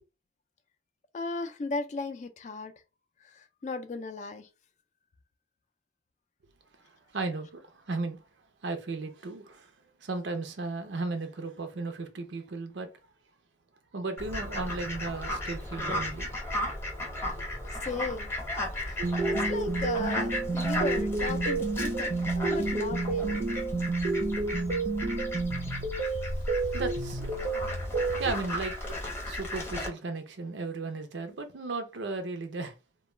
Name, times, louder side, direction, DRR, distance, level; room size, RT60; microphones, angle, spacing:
voice 1, 1.1-2.7 3.2-4.5 17.7-18.3 18.9-19.0 19.3-23.5, left 3 dB, 40° left, 0.3 m, -36 dB
voice 2, 7.1-8.2 8.6-9.7 10.0-12.9 13.9-16.3 26.7-27.3 28.2-32.7, right 3 dB, 85° right, 0.6 m, -35 dB
Fowl, 14.2-29.9, left 1 dB, 15° left, 0.8 m, -35 dB
sound 1, 19.0-28.3, right 3 dB, 40° right, 0.5 m, -30 dB
2.2 x 2.2 x 3.0 m
head